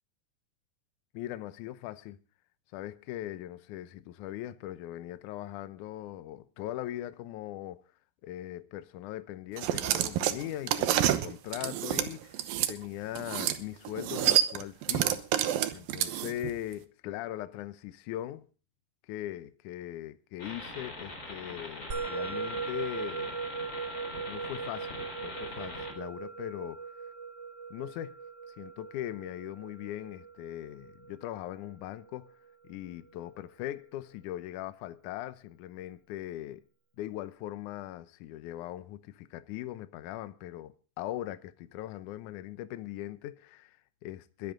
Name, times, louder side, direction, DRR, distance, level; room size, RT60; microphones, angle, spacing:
voice 1, 1.1-2.2 2.7-7.8 8.2-12.4 12.7-15.2 15.7-18.5 19.1-23.3 24.3-26.9 27.7-28.2 28.5-32.3 32.7-36.6 37.0-44.5, left 13 dB, 75° left, 2.0 m, -40 dB
sound 1, 9.6-12.7 13.2-13.6 13.9-16.5, right 12 dB, 80° right, 2.7 m, -28 dB
sound 2, 20.4-25.9, left 2 dB, 25° left, 4.0 m, -43 dB
Musical instrument, 21.9-32.5, right 5 dB, 40° right, 1.7 m, -40 dB
22.0 x 10.5 x 3.8 m
omnidirectional pair, 4.2 m